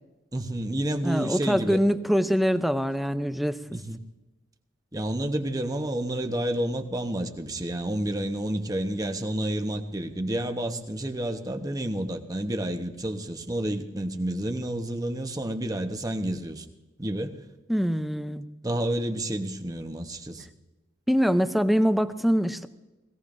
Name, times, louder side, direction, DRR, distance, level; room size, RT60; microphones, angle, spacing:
voice 1, 0.3-1.8 3.7-4.0 4.9-16.6 17.0-17.3 18.6-20.5, right 1 dB, 20° right, 6 dB, 1.0 m, -30 dB
voice 2, 1.0-3.6 17.7-18.4 21.1-22.7, equal, ahead, 10 dB, 0.5 m, -24 dB
21.0 x 16.5 x 2.6 m, 1.1 s
head